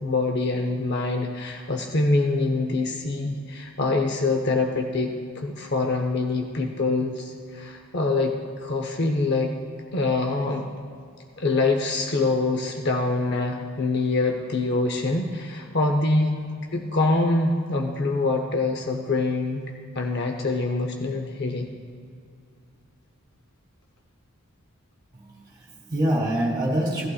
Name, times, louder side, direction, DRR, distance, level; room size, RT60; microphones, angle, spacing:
voice 1, 0.0-8.3 8.6-9.5 9.9-10.6 11.4-16.4 16.7-19.7 20.0-21.7, left 3 dB, 50° left, 3 dB, 0.6 m, -25 dB
voice 2, 25.1-27.1, right 1 dB, 20° right, -4 dB, 2.2 m, -26 dB
17.0 x 11.5 x 2.3 m, 2.3 s
head